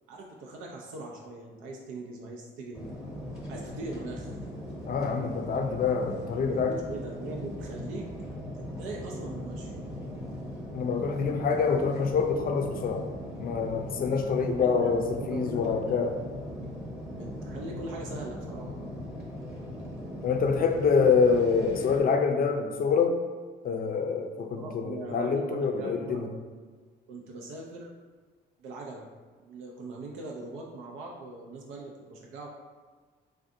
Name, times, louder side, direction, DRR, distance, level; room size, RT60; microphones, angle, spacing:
voice 1, 0.1-2.9 3.5-4.3 6.5-8.1 8.5-9.7 14.6-16.1 17.0-18.7 24.6-26.2 27.1-27.9 28.6-29.1 29.4-32.5, right 2 dB, 90° right, -1 dB, 0.4 m, -41 dB
sound 1, 2.7-22.0, equal, 5° right, 0.8 m, -39 dB
voice 2, 4.9-6.7 10.7-13.1 13.4-16.1 20.2-23.2 23.6-26.3, left 5 dB, 50° left, 5 dB, 0.4 m, -26 dB
3.4 x 2.5 x 2.6 m, 1.5 s
cardioid pair, 90°, 20 cm